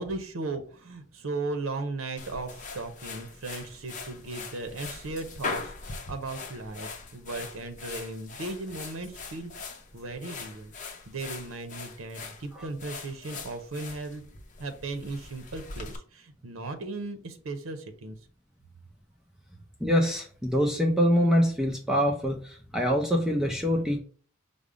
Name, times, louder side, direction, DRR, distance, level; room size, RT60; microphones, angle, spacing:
voice 1, 0.0-5.7 6.1-9.5 9.9-10.7 11.1-14.2 14.6-18.2, right 2 dB, 80° right, 8 dB, 0.6 m, -36 dB
sound 1, 2.2-16.0, left 4 dB, 40° left, 0.7 m, -41 dB
voice 2, 19.8-24.0, equal, 5° right, 0 dB, 0.5 m, -25 dB
5.2 x 2.0 x 4.8 m, 0.44 s
head